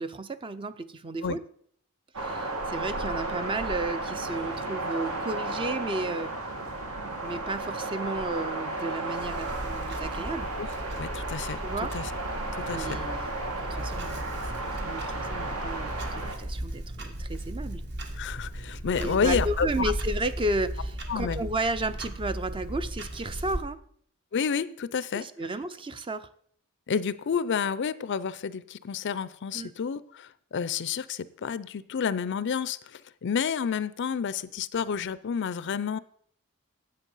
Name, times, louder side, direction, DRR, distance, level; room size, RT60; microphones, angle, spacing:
voice 1, 0.0-1.4 2.2-6.3 7.2-10.5 11.6-11.9 12.7-13.4 13.6-17.8 19.0-23.8 25.1-26.3 29.5-29.7, right 2 dB, 25° right, 12 dB, 0.5 m, -33 dB
sound 1, 2.1-16.3, right 2 dB, 70° right, 1.7 m, -33 dB
Clock, 9.2-23.6, right 1 dB, 50° right, 1.4 m, -36 dB
voice 2, 11.0-11.6 11.9-12.1 12.5-13.0 18.1-19.9 21.1-21.4 24.3-25.2 26.9-36.0, left 6 dB, 55° left, 17 dB, 0.4 m, -30 dB
9.8 x 7.9 x 5.5 m, 0.64 s
head